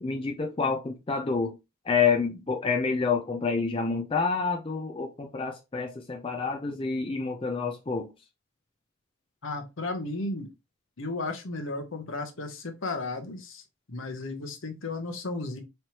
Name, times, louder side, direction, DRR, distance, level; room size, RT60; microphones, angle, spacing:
voice 1, 0.0-1.6 1.9-8.1, left 5 dB, 25° left, 0.4 m, -28 dB
voice 2, 9.4-10.5 11.0-13.6 13.9-15.6, left 2 dB, 65° left, 0.9 m, -34 dB
4.4 x 3.2 x 2.9 m
head